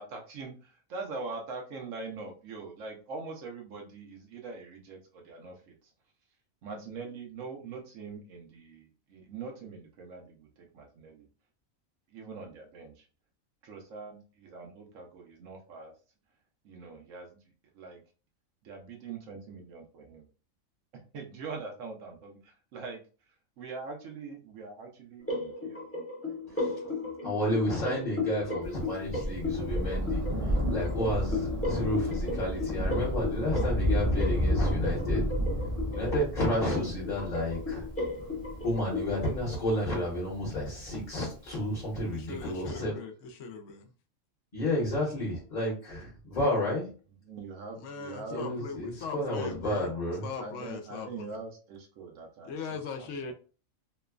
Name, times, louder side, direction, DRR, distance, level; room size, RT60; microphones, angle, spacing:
voice 1, 0.0-5.9 6.6-11.3 12.1-13.1 13.6-15.9 16.6-18.0 18.6-20.3 20.9-25.9 26.2-27.2 27.7-28.0 31.3-31.5 47.2-48.6 50.4-53.3, right 4 dB, 75° right, 1 dB, 1.0 m, -43 dB
sound 1, 25.2-39.3, left 3 dB, 15° left, 0.7 m, -35 dB
voice 2, 27.2-30.2 30.7-35.3 35.9-37.9 38.6-43.0 44.5-46.8 48.3-50.2, left 1 dB, 40° left, -5 dB, 1.0 m, -31 dB
Thunder, 28.6-41.5 42.4-42.5, equal, 45° right, 0.5 m, -32 dB
voice 3, 42.1-43.9 47.8-49.9 50.2-51.3 52.4-53.3, left 5 dB, 70° left, 5 dB, 0.9 m, -40 dB
3.0 x 2.1 x 2.3 m, 0.37 s
omnidirectional pair, 1.4 m